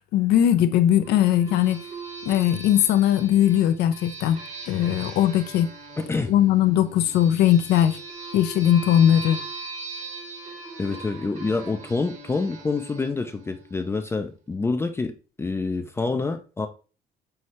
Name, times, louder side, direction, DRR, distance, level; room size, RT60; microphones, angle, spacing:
voice 1, 0.1-1.8 2.3-4.4 4.7-5.7 6.3-8.0 8.3-9.4, left 11 dB, 80° left, 0.5 m, -19 dB
sound 1, 1.0-14.2, right 3 dB, 45° right, 1.1 m, -40 dB
voice 2, 6.0-6.3 10.8-16.7, left 3 dB, 15° left, 0.4 m, -27 dB
5.7 x 2.7 x 3.1 m
cardioid pair, 125°, 17 cm